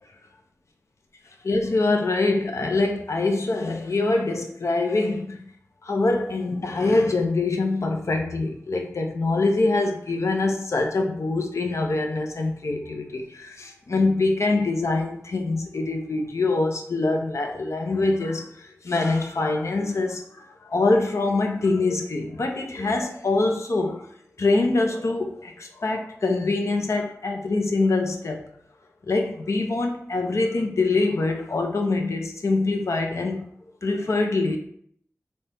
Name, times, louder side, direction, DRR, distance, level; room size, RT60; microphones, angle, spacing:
voice 1, 1.4-5.4 5.8-24.1 24.4-28.4 29.1-33.5 33.8-34.6, left 3 dB, 65° left, 0.7 m, -24 dB
4.1 x 2.8 x 3.4 m
wide cardioid pair, 80°, 5 cm